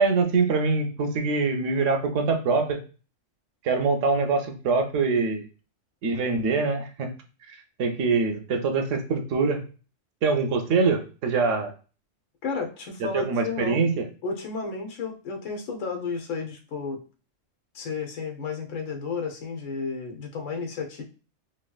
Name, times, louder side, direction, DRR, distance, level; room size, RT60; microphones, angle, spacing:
voice 1, 0.0-2.8 3.6-5.4 6.0-7.1 7.5-9.6 10.2-11.7 13.0-14.1, right 4 dB, 80° right, 6 dB, 1.0 m, -24 dB
voice 2, 12.4-13.9 14.2-17.0 17.7-21.0, left 5 dB, 80° left, 4 dB, 1.1 m, -32 dB
3.1 x 2.7 x 2.3 m, 0.36 s
omnidirectional pair, 1.3 m